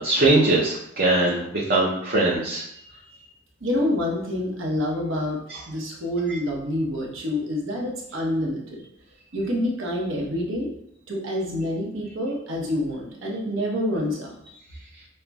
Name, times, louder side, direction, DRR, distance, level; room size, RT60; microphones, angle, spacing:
voice 1, 0.0-2.6 5.5-5.6, right 2 dB, 50° right, -5 dB, 0.6 m, -21 dB
voice 2, 3.6-5.4 5.7-8.8 9.3-10.7 11.1-14.3, left 1 dB, 80° right, -2 dB, 0.8 m, -27 dB
5.5 x 2.1 x 2.3 m, 0.76 s
head